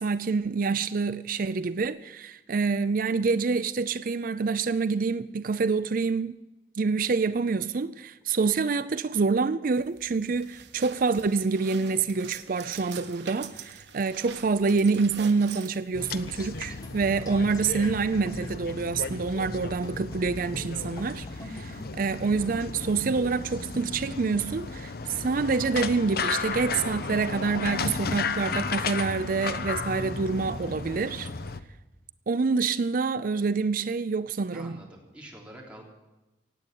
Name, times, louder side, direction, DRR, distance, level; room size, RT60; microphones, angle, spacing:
voice 1, 0.0-6.3 6.8-31.3 32.3-34.8, right 4 dB, 50° right, 0.5 m, -27 dB
sound 1, 9.7-17.0, right 7 dB, 75° right, 1.5 m, -45 dB
sound 2, 15.9-31.6, left 4 dB, 60° left, 0.8 m, -34 dB
sound 3, 16.0-25.5, left 1 dB, 20° left, 1.6 m, -48 dB
voice 2, 34.5-35.8, right 1 dB, 5° right, 3.5 m, -46 dB
17.5 x 8.5 x 9.3 m
head